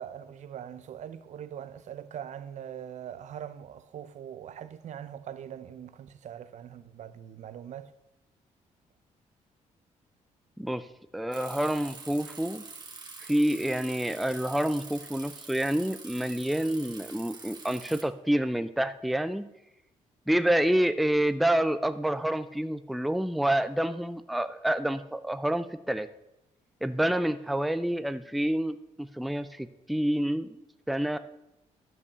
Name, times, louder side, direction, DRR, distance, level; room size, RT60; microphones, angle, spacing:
voice 1, 0.0-7.9, right 9 dB, 65° right, 0.7 m, -42 dB
voice 2, 10.6-10.9 11.1-12.6 13.2-19.5 20.3-26.1 26.8-30.6 30.9-31.2, right 1 dB, ahead, 0.5 m, -28 dB
Bicycle, 11.3-18.0, right 4 dB, 30° right, 1.7 m, -45 dB
11.0 x 5.4 x 6.8 m
cardioid pair, 100°, 13 cm